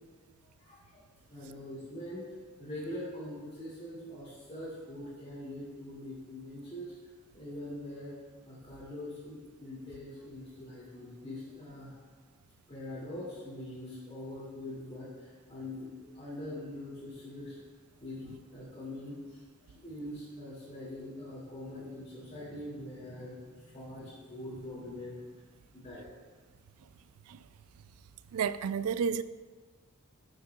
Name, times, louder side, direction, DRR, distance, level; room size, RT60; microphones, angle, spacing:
voice 1, 0.6-1.0 1.3-8.1 8.4-12.0 12.7-17.6 18.0-19.4 19.7-25.1 25.7-26.1, left 1 dB, 30° left, 2.5 m, -43 dB
voice 2, 28.3-29.2, right 7 dB, 75° right, 0.3 m, -31 dB
12.5 x 6.6 x 2.3 m
head